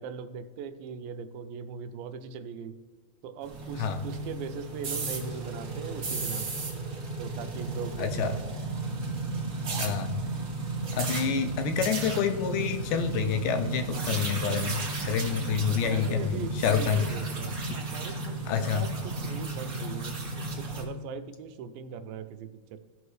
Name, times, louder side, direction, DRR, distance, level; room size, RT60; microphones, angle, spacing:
voice 1, 0.0-2.8 3.2-6.7 7.2-8.6 15.8-22.9, right 6 dB, 85° right, 10 dB, 2.3 m, -40 dB
sound 1, 3.4-20.8, right 3 dB, 55° right, 0.9 m, -33 dB
voice 2, 8.0-8.3 9.8-10.2 10.9-17.1 18.5-18.9, left 8 dB, 80° left, 8 dB, 2.0 m, -28 dB
16.0 x 5.8 x 3.2 m, 1.4 s
omnidirectional pair, 4.1 m